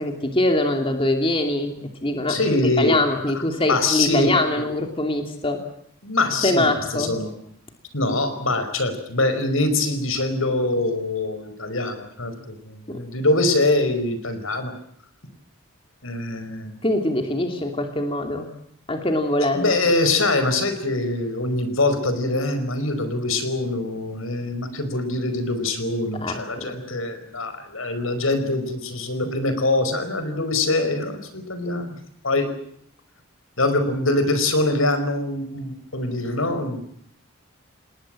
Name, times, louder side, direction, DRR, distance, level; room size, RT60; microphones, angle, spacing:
voice 1, 0.0-2.4 2.8-5.6 6.4-7.1 12.9-13.0 16.8-18.5 18.9-19.7 26.1-26.8, left 1 dB, 25° left, 4 dB, 2.8 m, -23 dB
voice 2, 2.3-2.9 3.7-4.3 6.0-6.7 6.9-7.3 7.9-14.7 16.0-16.7 19.5-31.9 32.2-32.5 33.6-36.8, left 2 dB, 80° left, 9 dB, 5.0 m, -23 dB
29.5 x 19.5 x 7.7 m, 0.69 s
head